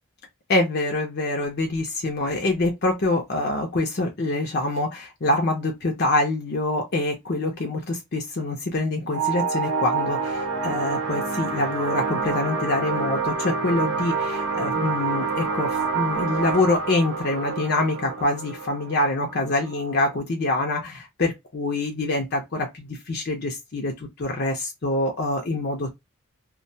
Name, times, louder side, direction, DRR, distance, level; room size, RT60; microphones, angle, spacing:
voice 1, 0.5-25.9, left 2 dB, 45° left, 0.5 m, -25 dB
sound 1, 9.1-20.2, right 4 dB, 75° right, 0.7 m, -27 dB
2.3 x 2.1 x 2.6 m
head